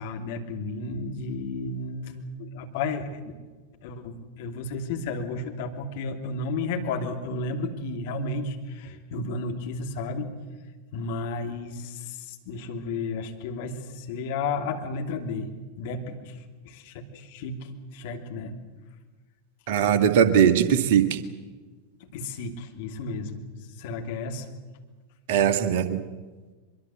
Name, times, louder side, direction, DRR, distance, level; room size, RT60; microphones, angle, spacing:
voice 1, 0.0-3.3 3.8-10.3 10.9-15.5 15.8-16.4 16.6-18.6 22.1-23.4 23.8-24.5, left 3 dB, 50° left, 4 dB, 2.9 m, -33 dB
voice 2, 19.7-21.2 25.3-26.0, right 8 dB, 50° right, 10 dB, 1.7 m, -20 dB
23.5 x 23.0 x 7.9 m, 1.3 s
figure-of-eight pair, 90°, 0 cm